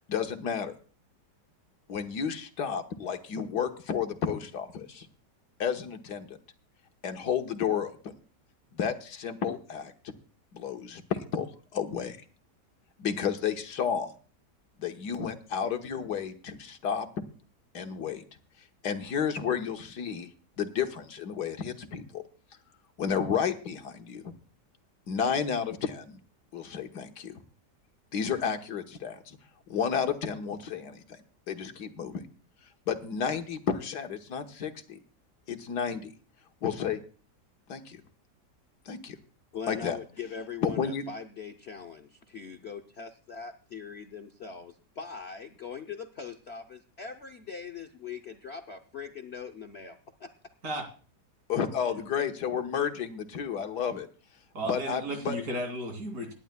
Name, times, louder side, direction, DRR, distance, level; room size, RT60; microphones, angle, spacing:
voice 1, 0.1-0.7 1.9-5.1 5.6-6.4 7.0-8.0 8.7-10.1 10.5-11.5 11.7-12.2 13.0-14.1 14.8-17.1 17.7-18.2 18.8-20.3 20.6-22.2 23.0-24.3 25.1-26.2 26.5-27.4 28.1-29.4 29.7-31.2 31.5-32.2 32.9-35.0 35.5-36.1 36.6-37.0 37.7-38.0 38.9-39.2 39.7-40.0 40.6-41.0 51.5-54.1 54.7-55.4, left 7 dB, 75° left, 6 dB, 1.7 m, -31 dB
voice 2, 39.5-50.3, left 6 dB, 50° left, 5 dB, 0.8 m, -41 dB
voice 3, 54.5-56.3, right 1 dB, 60° right, 4 dB, 3.2 m, -34 dB
27.0 x 10.5 x 2.2 m, 0.38 s
omnidirectional pair, 1.8 m